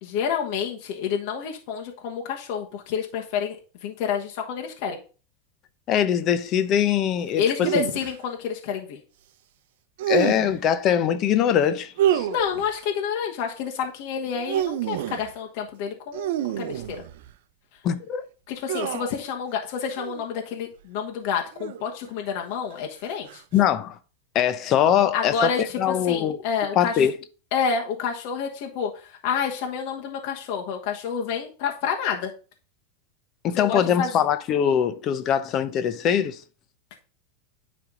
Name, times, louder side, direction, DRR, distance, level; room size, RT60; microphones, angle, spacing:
voice 1, 0.0-3.6 3.8-5.0 7.4-9.0 12.2-17.0 18.5-23.4 25.1-27.0 27.5-32.3 33.7-34.1, left 6 dB, 60° left, 1.3 m, -29 dB
voice 2, 5.9-7.4 10.1-12.3 17.8-18.2 23.5-24.0 24.3-25.5 25.8-26.4 26.8-27.1 33.4-36.4, left 9 dB, 40° left, 0.7 m, -22 dB
sound 1, 7.6-8.1 10.0-10.6 12.0-12.8 14.3-15.3 16.1-17.3 18.7-19.2 20.0-20.3 21.5-22.1 23.3-23.6, right 11 dB, 70° right, 0.6 m, -27 dB
9.7 x 3.4 x 3.8 m
supercardioid pair, 130°, 0 cm